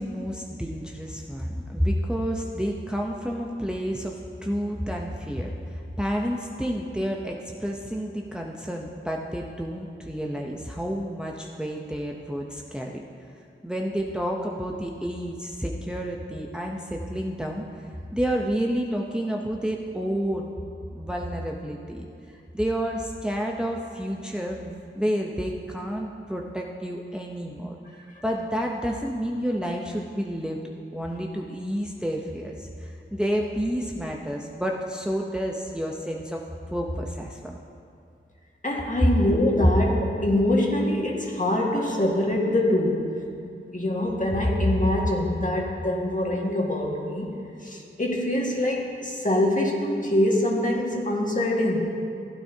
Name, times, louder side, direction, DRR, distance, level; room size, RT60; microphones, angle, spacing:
voice 1, 0.0-13.0 13.6-17.6 18.1-20.5 20.9-22.1 22.5-27.8 28.2-30.6 30.9-36.4 36.7-37.6, equal, 5° right, 0 dB, 0.8 m, -30 dB
voice 2, 38.6-43.2 43.7-47.3 47.6-51.8, left 1 dB, 40° left, -2 dB, 1.8 m, -24 dB
15.0 x 9.3 x 2.8 m, 2.4 s
cardioid pair, 45°, 21 cm